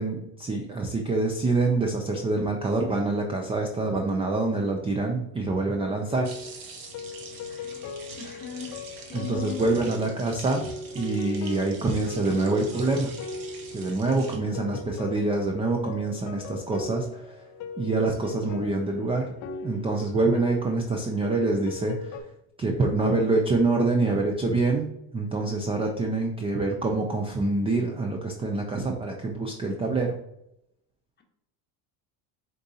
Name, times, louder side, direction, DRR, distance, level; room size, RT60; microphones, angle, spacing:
voice 1, 0.0-6.3 9.1-10.7 10.9-13.1 13.7-17.2 17.8-19.3 19.6-22.2 22.6-24.9 25.1-30.2, right 3 dB, 15° right, 2 dB, 0.3 m, -26 dB
sound 1, 6.1-22.2, left 3 dB, 45° left, 0.5 m, -39 dB
sound 2, 6.2-14.4, right 4 dB, 50° right, 1.1 m, -44 dB
voice 2, 7.5-8.8 9.1-9.8, left 7 dB, 25° left, 3 dB, 0.9 m, -39 dB
4.5 x 3.9 x 2.7 m, 0.80 s
supercardioid pair, 110°, 44 cm